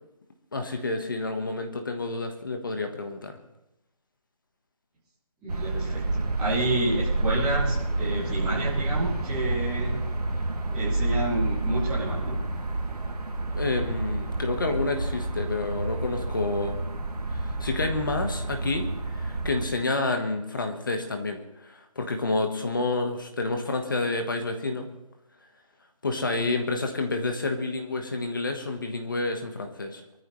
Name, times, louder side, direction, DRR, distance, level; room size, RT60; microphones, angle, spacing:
voice 1, 0.5-3.4 13.5-16.8 17.3-18.9 19.1-24.9 26.0-30.0, left 3 dB, 35° left, 4 dB, 1.5 m, -29 dB
voice 2, 5.4-10.0 10.7-12.4, right 1 dB, 5° right, -9 dB, 2.5 m, -30 dB
sound 1, 5.5-19.7, right 2 dB, 80° right, 2.1 m, -29 dB
23.5 x 14.5 x 3.3 m, 0.91 s
figure-of-eight pair, 180°, 20 cm